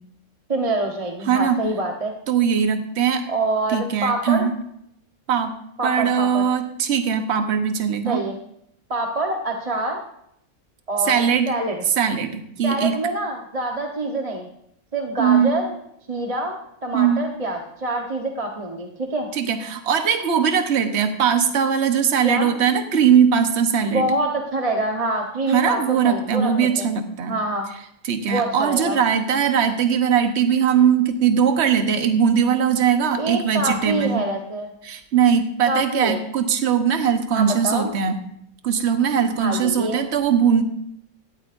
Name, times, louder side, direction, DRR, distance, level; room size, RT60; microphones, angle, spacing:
voice 1, 0.5-2.1 3.3-4.4 5.8-6.4 8.1-8.3 8.9-10.0 10.9-11.8 12.6-14.5 14.9-15.7 16.1-16.6 16.8-19.3 22.2-22.5 23.9-26.9 27.3-27.7 28.3-29.0 33.2-34.7 35.7-36.2 37.3-37.9 39.4-40.0, right 2 dB, 25° right, 2 dB, 1.1 m, -25 dB
voice 2, 1.2-1.6 2.3-3.2 3.7-4.5 5.3-5.5 5.8-8.2 11.0-11.5 12.0-13.0 15.2-15.5 16.9-17.3 19.3-24.1 25.5-27.4 28.0-34.2 34.8-38.2 38.6-40.6, right 7 dB, 50° right, 7 dB, 1.3 m, -20 dB
17.0 x 13.0 x 2.6 m, 0.73 s
omnidirectional pair, 1.6 m